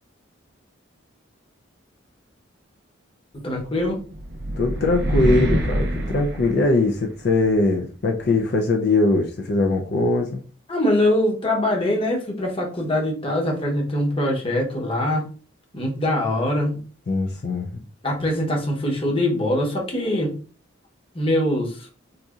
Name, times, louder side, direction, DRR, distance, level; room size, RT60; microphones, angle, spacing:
voice 1, 3.3-4.0 10.7-15.3 15.7-16.8 18.0-20.4 21.1-21.9, left 1 dB, 25° left, 0.9 m, -23 dB
sound 1, 3.8-7.2, right 1 dB, 55° right, 0.6 m, -25 dB
voice 2, 4.6-10.4 17.1-17.7, left 2 dB, 55° left, 0.4 m, -21 dB
4.0 x 2.6 x 2.3 m
head